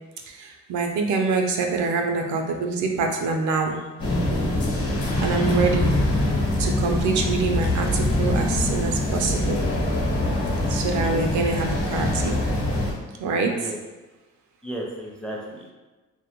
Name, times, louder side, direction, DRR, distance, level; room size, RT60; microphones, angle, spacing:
voice 1, 0.3-3.8 5.2-6.0 6.6-9.7 10.7-12.4 13.2-13.7, right 4 dB, 75° right, 3 dB, 0.4 m, -25 dB
sound 1, 4.0-12.9, left 1 dB, 50° left, 0.9 m, -24 dB
voice 2, 13.4-13.8 14.6-15.7, right 1 dB, 5° left, -2 dB, 0.4 m, -34 dB
2.2 x 2.1 x 2.8 m, 1.2 s
cardioid pair, 90°, 30 cm